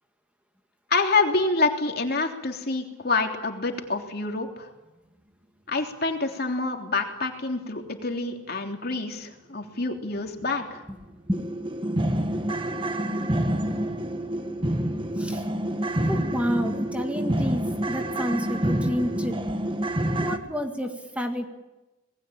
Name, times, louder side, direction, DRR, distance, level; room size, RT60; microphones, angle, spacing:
voice 1, 0.9-4.7 5.7-10.8, left 3 dB, 50° left, 3 dB, 3.3 m, -27 dB
sound 1, 10.4-10.5 10.9-11.0 11.3-20.4, right 1 dB, 25° right, 1.7 m, -27 dB
voice 2, 16.1-19.4 20.2-21.5, equal, 5° right, 4 dB, 1.9 m, -29 dB
27.0 x 20.5 x 8.8 m, 1.1 s
head